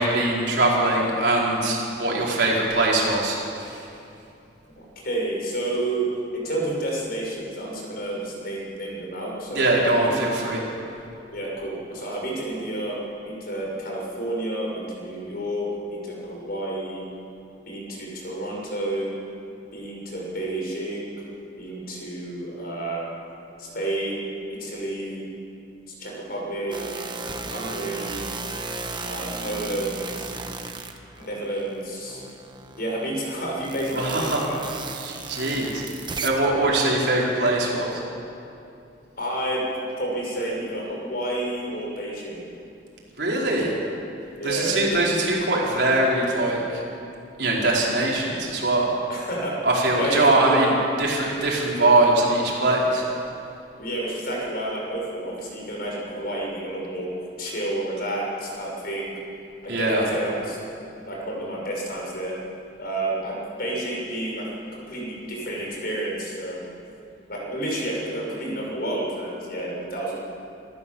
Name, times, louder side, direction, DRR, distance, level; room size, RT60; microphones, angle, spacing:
voice 1, 0.0-3.8 9.5-10.6 33.9-34.4 34.9-35.8 36.2-38.0 43.2-43.7 44.4-46.8 47.4-48.9 49.6-50.7 51.0-53.0 59.7-60.1, right 2 dB, 65° right, -4 dB, 4.9 m, -22 dB
voice 2, 5.0-6.1 6.3-10.4 11.3-13.0 13.2-17.0 17.7-19.1 19.7-21.2 21.6-23.0 23.6-25.2 26.0-27.0 27.5-28.2 29.0-30.3 31.2-32.2 32.8-34.6 39.2-42.5 43.5-43.8 44.4-45.0 49.1-49.6 49.9-50.7 53.8-57.1 57.4-59.1 59.6-62.3 62.8-66.6 67.3-70.2, right 1 dB, 55° left, -3 dB, 6.3 m, -30 dB
sound 1, 26.7-31.7 32.1-36.5, right 3 dB, 25° right, 1.3 m, -35 dB
27.0 x 14.0 x 7.3 m, 2.6 s
head